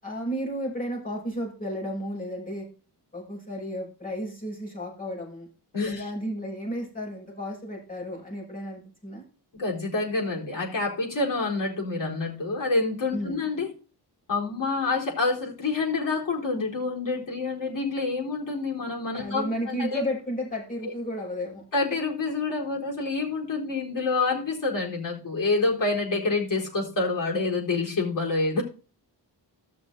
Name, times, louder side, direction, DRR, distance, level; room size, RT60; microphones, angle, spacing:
voice 1, 0.0-2.6 3.1-5.5 5.9-9.2 13.1-13.4 19.1-21.6, equal, 20° left, -3 dB, 6.1 m, -33 dB
voice 2, 5.7-6.1 9.6-13.7 14.3-20.0 20.8-20.9 21.7-28.6, left 3 dB, 45° left, -3 dB, 4.4 m, -27 dB
14.5 x 6.4 x 4.0 m, 0.36 s
wide cardioid pair, 170°, 43 cm